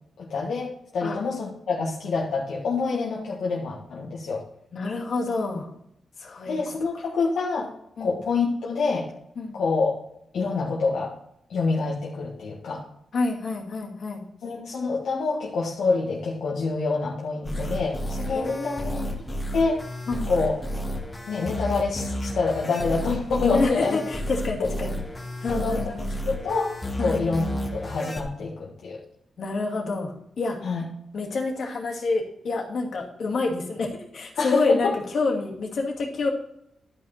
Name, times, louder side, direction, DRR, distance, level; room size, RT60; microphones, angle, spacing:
voice 1, 0.3-4.4 6.5-7.7 8.0-9.1 9.5-10.0 10.3-11.1 11.5-12.8 14.4-18.8 19.5-19.8 20.3-20.6 21.3-24.0 24.6-24.7 25.5-25.9 26.3-26.7 27.0-27.5 27.7-29.0 30.6-30.8 34.4-35.0, left 4 dB, 85° left, -4 dB, 1.6 m, -26 dB
voice 2, 4.7-5.7 6.2-6.6 8.0-8.1 9.4-9.6 13.1-14.2 18.3-19.1 20.1-20.3 23.5-25.0 25.4-26.1 27.0-27.2 29.4-30.6 31.1-36.3, left 3 dB, 70° left, 0 dB, 2.4 m, -28 dB
sound 1, 17.4-28.2, equal, 25° left, 2.1 m, -31 dB
12.0 x 5.6 x 4.3 m, 0.74 s
cardioid pair, 75°, 0 cm